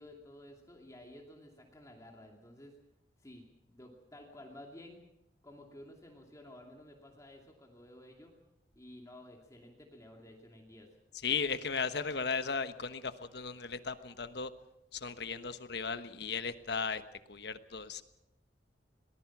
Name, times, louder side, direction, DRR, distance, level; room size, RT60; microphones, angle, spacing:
voice 1, 0.0-2.8 3.2-5.0 5.4-8.3 8.8-10.9, left 1 dB, 20° left, 1 dB, 2.5 m, -53 dB
voice 2, 11.2-14.5 14.9-17.0 17.3-18.0, left 5 dB, 65° left, 11 dB, 1.2 m, -36 dB
23.0 x 19.5 x 6.0 m, 0.88 s
head